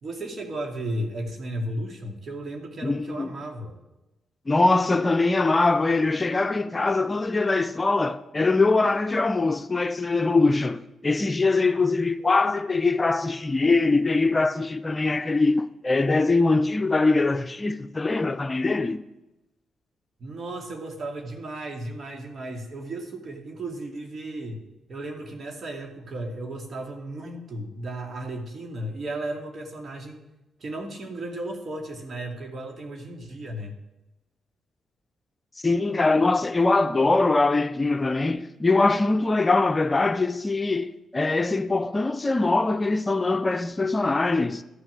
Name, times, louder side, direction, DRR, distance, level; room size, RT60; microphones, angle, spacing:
voice 1, 0.0-3.8 20.2-24.6 24.9-30.2 30.6-33.8, right 1 dB, 50° right, 2.4 m, -34 dB
voice 2, 2.8-3.3 4.5-19.0 35.6-44.6, left 3 dB, 30° left, 0.6 m, -22 dB
12.5 x 6.3 x 7.5 m
hypercardioid pair, 40°, 0 cm